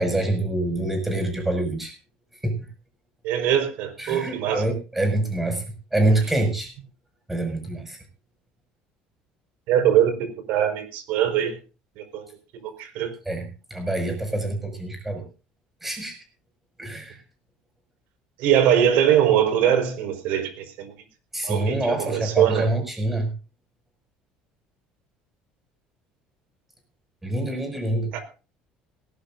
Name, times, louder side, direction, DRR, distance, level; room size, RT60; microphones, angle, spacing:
voice 1, 0.0-1.9 2.4-2.6 4.0-5.6 5.9-6.7 7.3-8.0 13.3-15.2 15.8-16.2 16.8-17.2 21.3-23.3 27.2-28.1, right 1 dB, 5° right, 6.2 m, -25 dB
voice 2, 3.2-4.7 9.7-11.6 12.0-12.2 12.5-13.1 18.4-20.9 21.4-22.7 28.1-28.2, right 10 dB, 70° right, 4.8 m, -22 dB
19.0 x 17.5 x 2.6 m
cardioid pair, 150°, 3 cm